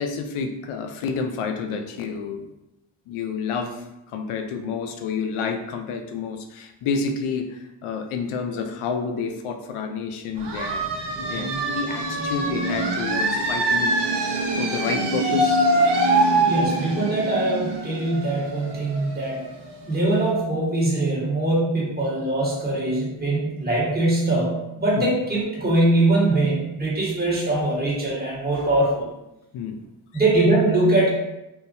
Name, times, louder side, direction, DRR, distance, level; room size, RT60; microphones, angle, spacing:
voice 1, 0.0-2.4 3.1-10.8 11.2-13.9 14.6-15.6 25.0-25.1 29.5-29.8 30.1-30.2, left 5 dB, 80° left, 6 dB, 0.6 m, -29 dB
sound 1, 10.4-19.9, right 2 dB, 55° right, 0.8 m, -24 dB
voice 2, 16.4-19.4 19.9-29.1 30.1-31.1, right 2 dB, 20° right, -5 dB, 1.4 m, -22 dB
3.6 x 2.7 x 2.6 m, 0.93 s
cardioid pair, 75°, 49 cm